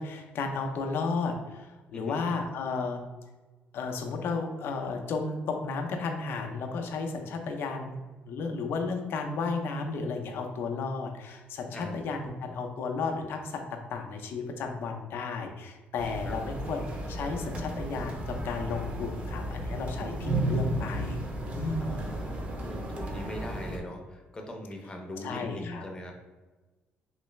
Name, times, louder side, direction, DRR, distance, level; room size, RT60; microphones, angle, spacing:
voice 1, 0.0-3.0 3.7-8.0 8.3-21.2 21.5-22.0 25.2-25.8, left 4 dB, 65° left, 3 dB, 0.5 m, -33 dB
sound 1, 16.0-23.8, right 1 dB, 30° right, 0.6 m, -34 dB
voice 2, 21.8-26.1, left 1 dB, 20° left, 2 dB, 0.6 m, -41 dB
3.2 x 3.1 x 3.1 m, 1.2 s
cardioid pair, 120°, 4 cm